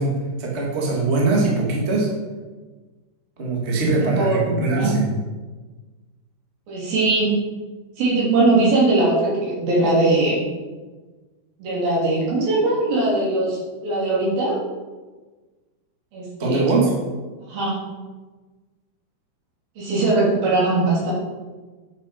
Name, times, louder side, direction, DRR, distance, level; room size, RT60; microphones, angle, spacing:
voice 1, 0.0-2.1 3.4-5.1 16.4-16.9, right 3 dB, 25° right, -3 dB, 1.3 m, -21 dB
voice 2, 3.9-4.9 6.7-7.3 8.0-10.4 11.6-14.6 16.1-16.6 17.5-17.8 19.8-21.1, right 2 dB, 65° right, -6 dB, 4.8 m, -20 dB
10.0 x 7.2 x 5.2 m, 1.3 s
omnidirectional pair, 4.7 m